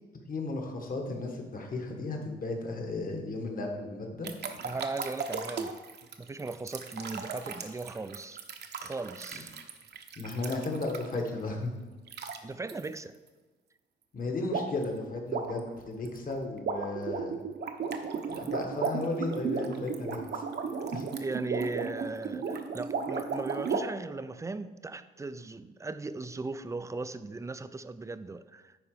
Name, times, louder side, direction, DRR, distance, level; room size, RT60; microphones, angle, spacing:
voice 1, 0.3-4.3 10.2-11.7 14.1-17.3 18.3-20.4 20.9-21.0, left 2 dB, 45° left, 2 dB, 1.6 m, -34 dB
sound 1, 4.2-11.3 12.1-12.4 12.7-12.9 14.5-14.8 15.2-23.8, right 5 dB, 55° right, 0.9 m, -35 dB
voice 2, 4.6-5.8 6.2-8.4 8.8-9.5 12.4-13.1 21.2-28.8, right 3 dB, 15° right, 12 dB, 0.4 m, -38 dB
9.9 x 3.9 x 5.0 m, 1.3 s
cardioid pair, 90°, 20 cm